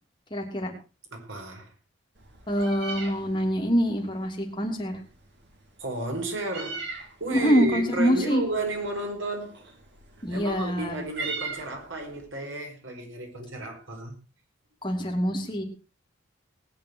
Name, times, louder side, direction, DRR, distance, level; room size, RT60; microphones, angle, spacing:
voice 1, 0.3-0.7 2.5-5.0 7.3-8.4 10.2-11.0 14.8-15.6, equal, 25° left, 3.1 m, -25 dB
voice 2, 1.1-1.7 5.8-6.9 7.2-9.6 10.3-14.1, right 2 dB, 90° right, 5.1 m, -32 dB
Meow, 2.2-12.3, right 4 dB, 60° right, 3.2 m, -42 dB
19.5 x 9.8 x 4.7 m
head